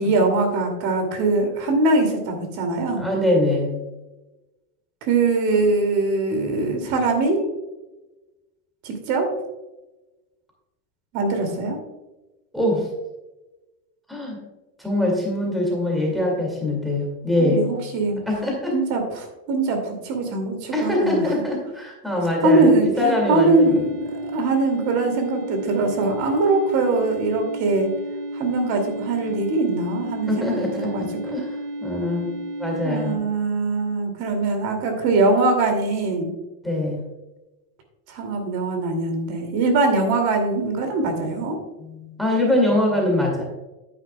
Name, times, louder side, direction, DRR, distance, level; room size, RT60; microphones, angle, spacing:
voice 1, 0.0-3.0 5.0-7.5 8.8-9.3 11.1-11.8 17.4-18.2 18.7-21.3 22.4-23.9 24.2-27.9 28.3-31.1 32.8-36.3 38.1-41.6, right 3 dB, 45° right, 4 dB, 2.6 m, -22 dB
voice 2, 3.0-3.8 12.5-12.9 14.1-14.4 14.8-17.7 18.3-18.8 20.7-23.7 30.3-33.2 36.6-37.0 41.8-43.4, left 1 dB, ahead, -2 dB, 2.2 m, -23 dB
sound 1, 23.1-33.2, right 1 dB, 85° right, 2.3 m, -33 dB
10.0 x 9.9 x 2.3 m, 1.0 s
supercardioid pair, 160°, 50 cm